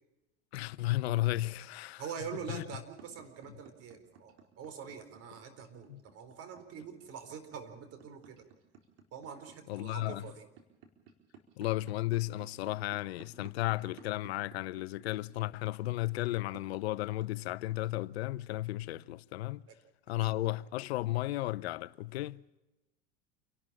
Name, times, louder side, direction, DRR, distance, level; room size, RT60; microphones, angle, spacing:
voice 1, 0.5-2.0 2.5-2.6 5.9-6.0 9.7-10.2 11.6-19.6 20.1-22.4, left 17 dB, 85° left, 0.7 m, -34 dB
voice 2, 2.0-8.4 9.1-10.5 19.7-19.8 20.2-20.6, right 7 dB, 50° right, 4.2 m, -45 dB
Computer Tapping, 2.9-18.2, right 6 dB, 65° right, 4.3 m, -55 dB
28.5 x 12.5 x 8.8 m
supercardioid pair, 100°, 31 cm